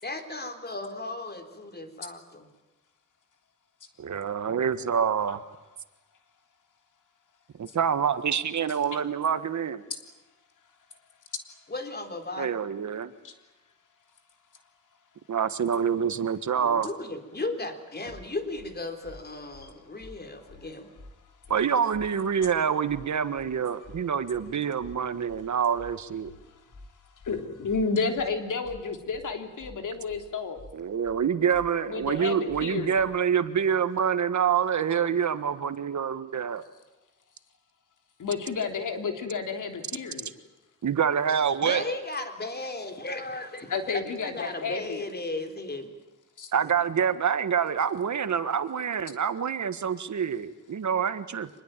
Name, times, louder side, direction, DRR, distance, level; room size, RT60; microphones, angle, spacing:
voice 1, 0.0-2.5 11.7-12.6 16.6-20.9 41.6-45.9, left 2 dB, 30° left, 7 dB, 3.9 m, -35 dB
voice 2, 4.0-5.4 7.6-9.8 12.4-13.1 15.3-16.9 21.5-26.3 30.7-36.6 40.8-41.8 46.5-51.5, right 7 dB, 65° right, 11 dB, 1.6 m, -26 dB
sound 1, 18.1-18.2 18.6-18.7 19.0-19.2 19.5-19.7 20.0-20.2 20.5-20.6 21.0-21.1 21.4-21.6 21.9-22.1 22.4-22.6 22.9-23.0 23.4-23.5 23.8-24.0 24.3-24.5 24.8-25.0 25.3-25.4 25.8-25.9 26.2-26.4 26.7-26.9 27.2-27.4 27.7-27.8 28.2-28.3 28.6-28.8 29.1-29.3 29.6-29.8 30.1-30.2 30.6-30.7 31.0-31.2 31.5-31.7 32.0-32.2 32.5-32.6 33.0-33.1, left 2 dB, 55° left, 6.8 m, -48 dB
voice 3, 27.2-30.6 31.9-33.0 38.2-40.3 43.7-45.0 46.4-46.5, left 4 dB, 75° left, 6 dB, 3.4 m, -31 dB
25.5 x 21.0 x 9.1 m, 1.0 s
wide cardioid pair, 105°, 31 cm